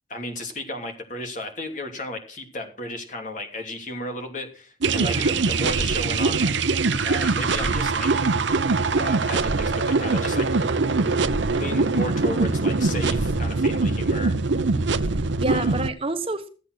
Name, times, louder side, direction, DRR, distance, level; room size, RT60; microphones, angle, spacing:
voice 1, 0.1-6.5 7.0-8.1 8.9-10.5 11.5-14.3 15.5-15.7, left 1 dB, 45° left, 4 dB, 2.8 m, -34 dB
sound 1, 4.8-15.9, right 3 dB, 90° right, 0.8 m, -22 dB
voice 2, 5.0-5.4 15.0-16.5, right 2 dB, 30° right, 8 dB, 1.1 m, -29 dB
14.0 x 8.1 x 6.2 m, 0.38 s
head